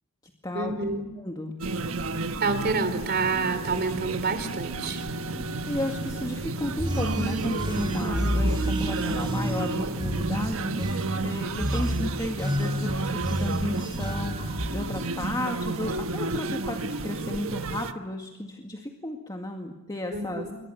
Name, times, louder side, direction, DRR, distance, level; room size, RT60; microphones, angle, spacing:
voice 1, 0.5-1.0 2.4-5.0 20.1-20.5, right 4 dB, 50° right, 10 dB, 3.5 m, -28 dB
voice 2, 1.2-1.6 5.7-10.9 11.2-20.5, left 1 dB, 20° left, 2 dB, 2.1 m, -33 dB
sound 1, 1.6-17.9, right 3 dB, 85° right, 1.3 m, -32 dB
sound 2, 2.4-9.6, equal, 75° left, 3.2 m, -44 dB
sound 3, 6.6-14.7, equal, 25° right, 3.9 m, -30 dB
27.5 x 23.5 x 7.0 m, 1.0 s
head